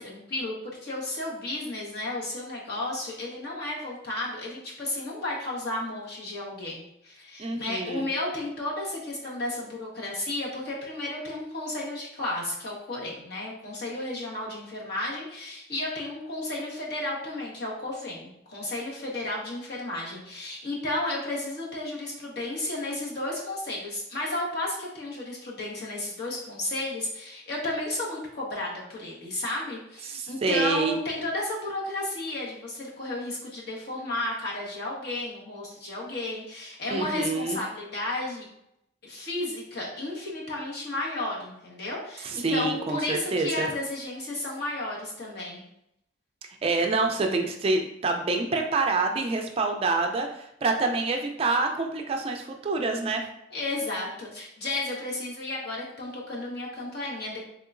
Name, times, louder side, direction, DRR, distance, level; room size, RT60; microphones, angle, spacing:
voice 1, 0.0-38.5 39.0-45.6 53.5-57.4, left 2 dB, 55° left, -4 dB, 1.2 m, -33 dB
voice 2, 7.4-8.0 30.1-30.9 36.9-37.6 42.2-43.7 46.6-53.2, right 3 dB, 30° right, 4 dB, 0.3 m, -27 dB
3.8 x 3.6 x 2.5 m, 0.79 s
head